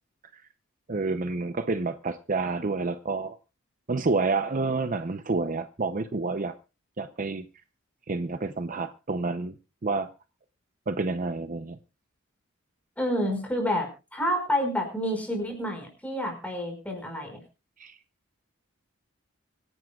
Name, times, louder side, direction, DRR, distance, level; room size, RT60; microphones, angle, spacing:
voice 1, 0.9-3.4 3.9-6.5 7.0-7.4 8.1-9.6 9.8-10.1 10.9-11.8 17.8-17.9, right 3 dB, 40° right, 10 dB, 0.6 m, -29 dB
voice 2, 13.0-17.4, equal, 5° left, 3 dB, 5.2 m, -29 dB
25.5 x 11.0 x 2.3 m, 0.30 s
head